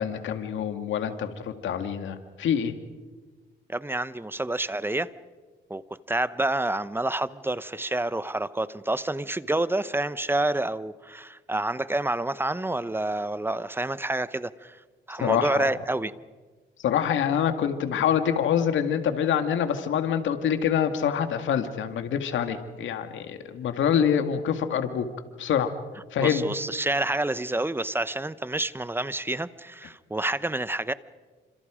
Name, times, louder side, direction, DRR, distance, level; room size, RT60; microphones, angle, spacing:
voice 1, 0.0-2.7 15.2-15.6 16.8-25.1 25.4-25.7 26.1-26.4, left 8 dB, 75° left, 2.1 m, -26 dB
voice 2, 3.7-5.1 5.7-5.8 6.1-14.8 15.1-16.1 26.2-30.9, right 2 dB, 10° right, 0.9 m, -28 dB
28.0 x 26.0 x 5.1 m
cardioid pair, 90°, 20 cm